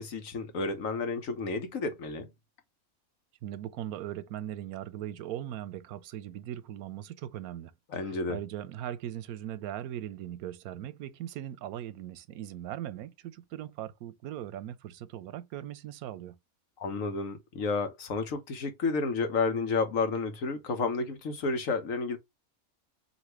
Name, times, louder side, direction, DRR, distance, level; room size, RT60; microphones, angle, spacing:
voice 1, 0.0-2.3 7.9-8.4 16.8-22.2, left 4 dB, 65° left, 1.4 m, -31 dB
voice 2, 3.4-16.4, right 11 dB, 90° right, 1.1 m, -39 dB
5.1 x 2.9 x 3.0 m
omnidirectional pair, 1.5 m